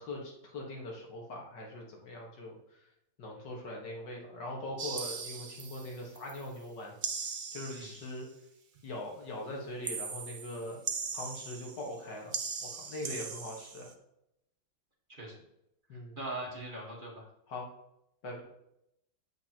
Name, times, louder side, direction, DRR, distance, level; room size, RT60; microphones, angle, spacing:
voice 1, 0.0-2.8 3.2-7.0 7.5-8.3 8.8-10.8 11.1-13.9 15.9-16.2 17.5-17.7 18.2-18.4, left 1 dB, 75° left, -1 dB, 2.2 m, -41 dB
sound 1, 4.8-6.5 7.0-8.2 9.8-12.0 12.3-13.9, right 5 dB, 80° right, 0.4 m, -39 dB
voice 2, 15.9-17.2, right 2 dB, 30° right, -3 dB, 1.5 m, -41 dB
8.2 x 7.8 x 2.9 m, 0.82 s
omnidirectional pair, 1.9 m